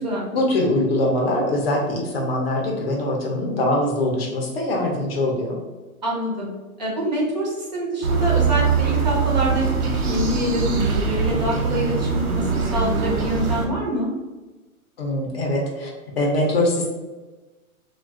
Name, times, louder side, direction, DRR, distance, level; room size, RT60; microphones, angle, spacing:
voice 1, 0.3-5.6 15.0-16.9, left 1 dB, 45° left, 0 dB, 0.6 m, -23 dB
voice 2, 6.0-6.5 6.8-14.1, equal, 30° right, -4 dB, 0.5 m, -25 dB
sound 1, 8.0-13.7, right 5 dB, 85° right, 0.9 m, -22 dB
2.4 x 2.2 x 3.5 m, 1.2 s
hypercardioid pair, 160°, 43 cm